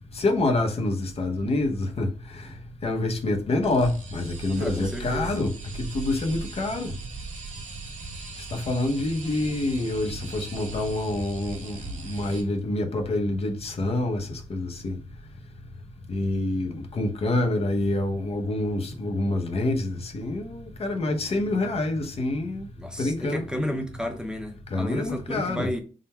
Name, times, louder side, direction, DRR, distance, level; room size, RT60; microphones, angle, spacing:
voice 1, 0.1-2.5 2.8-5.5 5.8-6.9 8.4-15.0 16.1-22.7 23.0-23.4 24.7-25.7, left 2 dB, 50° left, 0.7 m, -27 dB
sound 1, 3.6-12.4, right 3 dB, 75° right, 1.2 m, -38 dB
voice 2, 4.6-5.4 22.8-25.8, left 1 dB, 5° right, 0.6 m, -32 dB
3.7 x 2.1 x 4.3 m
cardioid pair, 95°, 13 cm